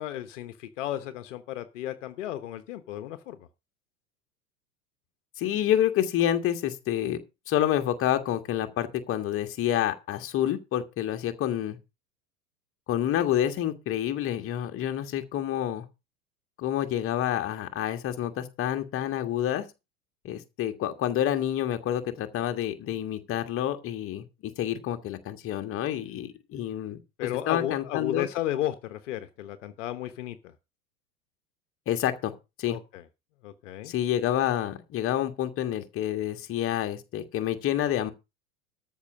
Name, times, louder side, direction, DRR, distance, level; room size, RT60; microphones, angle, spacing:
voice 1, 0.0-3.4 27.2-30.5 32.7-33.0 33.4-33.9, left 12 dB, 50° left, 1.1 m, -34 dB
voice 2, 5.4-11.8 12.9-15.8 16.6-19.6 20.2-27.0 27.5-28.3 31.9-32.3 32.6-32.8 33.8-38.1, left 11 dB, 30° left, 1.6 m, -28 dB
13.5 x 5.7 x 6.3 m
figure-of-eight pair, 90°, 46 cm